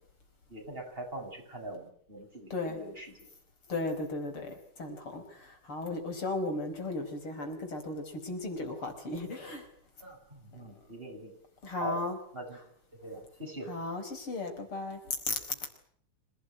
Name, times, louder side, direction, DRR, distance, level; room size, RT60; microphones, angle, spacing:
voice 1, 0.5-3.1 10.0-11.3 11.8-12.0 12.3-12.6 13.0-13.7, right 1 dB, 25° right, 2 dB, 8.1 m, -42 dB
voice 2, 2.5-2.8 3.7-9.7 11.6-12.2 13.7-15.0 15.3-15.4, left 2 dB, 85° left, 5 dB, 5.9 m, -35 dB
26.5 x 18.5 x 9.2 m, 0.62 s
omnidirectional pair, 2.3 m